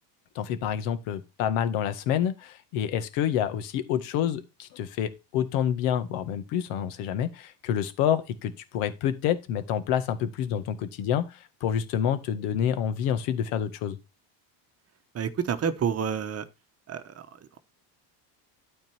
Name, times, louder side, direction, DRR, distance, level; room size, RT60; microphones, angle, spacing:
voice 1, 0.4-14.0, left 9 dB, 85° left, 1.8 m, -28 dB
voice 2, 15.1-16.4 16.9-17.3, right 7 dB, 30° right, 1.0 m, -29 dB
12.5 x 4.5 x 4.4 m
cardioid pair, 150°, 49 cm